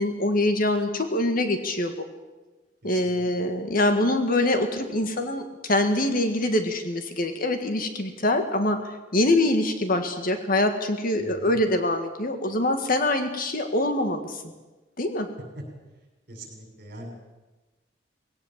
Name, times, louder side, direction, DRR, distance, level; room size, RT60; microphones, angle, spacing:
voice 1, 0.0-2.0 2.8-8.8 9.1-14.4 15.0-15.3, left 1 dB, 50° left, 7 dB, 1.9 m, -24 dB
voice 2, 2.8-3.2 11.2-11.6 16.3-17.1, right 1 dB, 55° right, 2 dB, 6.8 m, -43 dB
20.5 x 17.5 x 7.5 m, 1.2 s
head